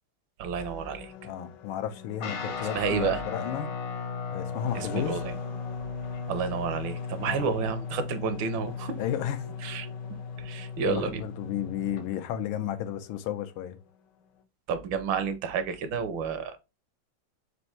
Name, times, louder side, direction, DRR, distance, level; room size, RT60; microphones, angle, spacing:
voice 1, 0.4-1.1 2.6-3.2 4.7-5.4 6.3-9.0 9.6-9.9 10.4-11.2 14.7-16.6, right 6 dB, 75° right, 1.3 m, -30 dB
sound 1, 0.6-14.4, left 6 dB, 70° left, 1.1 m, -50 dB
voice 2, 1.2-3.7 4.3-5.2 7.3-7.5 9.0-9.5 10.8-13.8, left 10 dB, 90° left, 1.5 m, -33 dB
Guitar, 2.2-12.0, left 5 dB, 55° left, 0.8 m, -36 dB
4.5 x 2.5 x 4.3 m
omnidirectional pair, 2.2 m